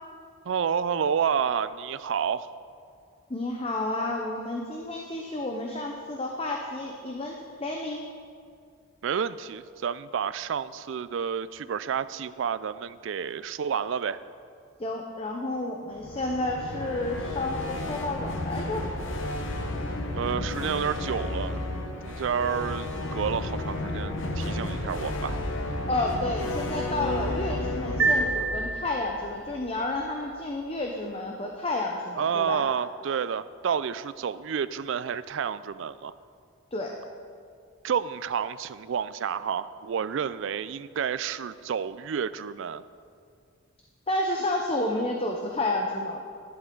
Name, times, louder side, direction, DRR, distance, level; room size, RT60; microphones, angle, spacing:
voice 1, 0.5-2.5 9.0-14.2 20.1-21.6 22.0-25.4 32.2-36.1 37.8-42.8, right 7 dB, 65° right, 15 dB, 0.3 m, -30 dB
voice 2, 3.3-8.0 14.8-18.9 25.9-32.6 36.7-36.9 44.1-46.2, left 2 dB, 30° left, 1 dB, 0.7 m, -30 dB
sound 1, 15.9-29.9, left 2 dB, 65° left, 0.9 m, -32 dB
sound 2, 28.0-29.5, right 3 dB, 85° right, 1.1 m, -27 dB
11.0 x 11.0 x 3.8 m, 2.2 s
head